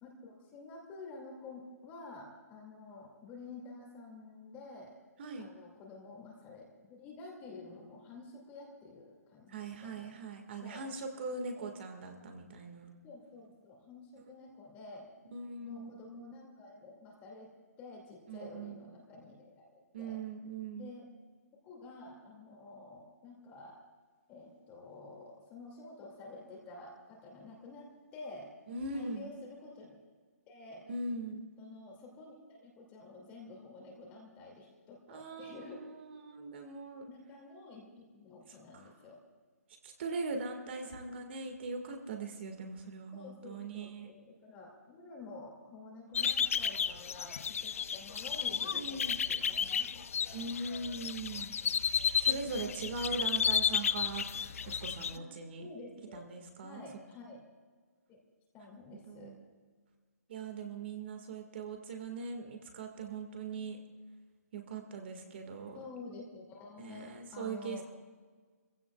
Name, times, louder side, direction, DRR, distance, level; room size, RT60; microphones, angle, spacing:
voice 1, 0.0-4.9 5.4-10.1 10.6-10.9 11.5-11.7 12.1-12.2 13.0-15.1 15.6-17.5 17.8-20.2 20.7-21.0 21.6-23.7 24.3-27.9 28.1-28.5 28.9-30.0 30.5-30.8 31.6-35.8 37.1-39.2 43.1-50.5 55.1-55.3 55.6-56.2 56.6-57.4 58.1-58.2 58.5-59.4 65.7-67.8, left 3 dB, 20° left, -1 dB, 2.3 m, -50 dB
voice 2, 9.5-12.9 15.3-15.9 18.3-18.8 19.9-20.9 28.7-29.3 30.9-31.5 35.1-37.0 38.7-38.9 39.8-44.1 46.2-46.5 48.7-49.2 50.3-51.5 52.2-55.6 56.1-56.8 59.1-59.4 60.3-63.8 64.5-65.8 66.8-67.8, right 3 dB, 40° right, 5 dB, 1.8 m, -41 dB
sound 1, 46.1-55.2, left 7 dB, 55° left, 0.4 m, -33 dB
28.0 x 15.5 x 2.4 m, 1.5 s
hypercardioid pair, 150°, 9 cm